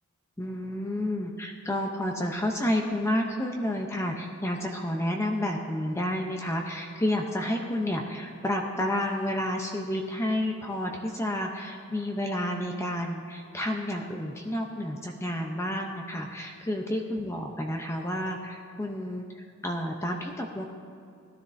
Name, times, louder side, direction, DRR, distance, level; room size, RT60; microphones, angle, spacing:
voice 1, 0.4-20.7, left 1 dB, 15° left, 2 dB, 0.7 m, -30 dB
18.0 x 12.5 x 2.6 m, 2.5 s
head